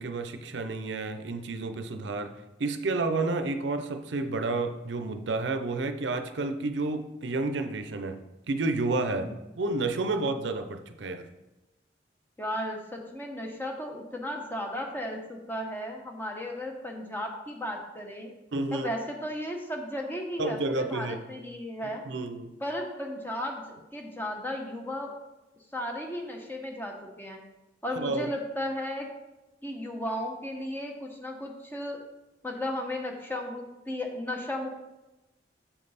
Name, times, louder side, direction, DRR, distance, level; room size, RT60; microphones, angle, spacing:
voice 1, 0.0-2.3 2.6-8.2 8.5-11.3 18.5-18.9 20.4-21.2 22.1-22.5 28.0-28.3, right 3 dB, 85° right, 8 dB, 0.6 m, -30 dB
voice 2, 12.4-18.3 18.7-22.1 22.6-25.2 25.7-27.4 27.8-29.1 29.6-32.0 32.4-34.7, left 1 dB, 10° left, 1 dB, 0.9 m, -35 dB
7.2 x 5.3 x 4.1 m, 1.0 s
head